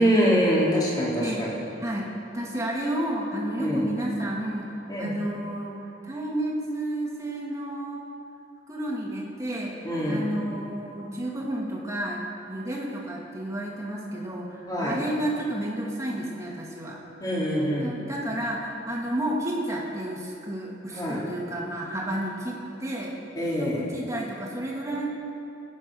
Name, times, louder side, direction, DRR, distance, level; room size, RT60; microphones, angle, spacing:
voice 1, 0.0-1.6 3.6-3.9 4.9-5.1 9.8-10.3 14.7-15.0 17.2-17.9 20.9-21.2 23.4-23.8, equal, 20° left, -6 dB, 3.5 m, -24 dB
voice 2, 2.3-8.0 8.7-9.8 10.0-12.2 12.5-17.0 17.8-23.2 23.6-25.1, right 1 dB, 15° right, -3 dB, 2.4 m, -31 dB
19.5 x 9.7 x 6.3 m, 2.7 s
head